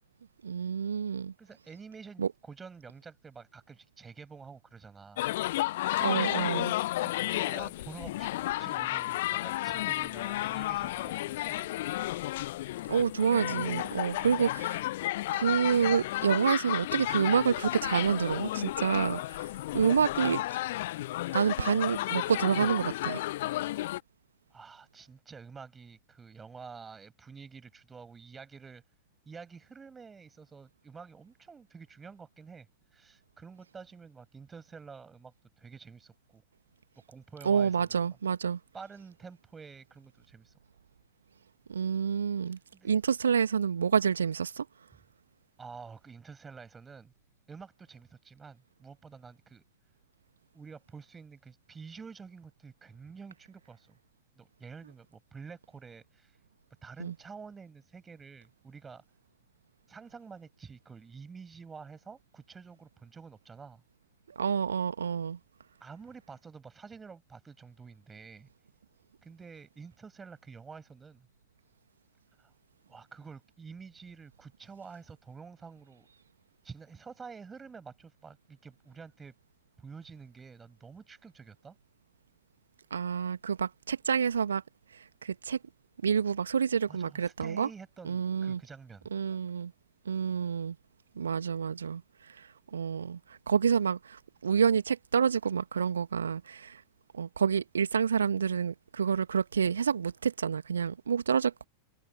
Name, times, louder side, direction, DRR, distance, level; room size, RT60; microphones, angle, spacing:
voice 1, 0.4-1.3 2.2-2.3 6.0-6.7 12.9-14.8 15.3-19.5 19.7-20.4 21.3-23.2 37.4-38.6 41.7-42.6 42.8-44.7 57.0-57.1 64.3-65.4 82.9-84.6 84.9-85.6 86.0-87.7 88.0-88.6 89.1-89.7 90.0-90.7 91.1-96.8 97.1-101.6, right 7 dB, 70° right, 1.7 m, -28 dB
voice 2, 1.4-5.3 6.9-11.7 24.5-28.8 29.2-32.7 32.9-36.4 37.1-38.0 38.7-40.5 42.7-42.9 45.6-47.1 47.5-49.6 50.5-54.0 54.4-56.4 56.8-59.0 59.9-63.8 65.8-68.5 69.2-71.3 72.4-72.5 72.9-76.1 76.6-79.4 79.8-81.7 86.9-89.1, right 5 dB, 15° right, 6.7 m, -49 dB
sound 1, 5.2-24.0, left 16 dB, 55° left, 1.0 m, -32 dB
figure-of-eight pair, 90°, 0 cm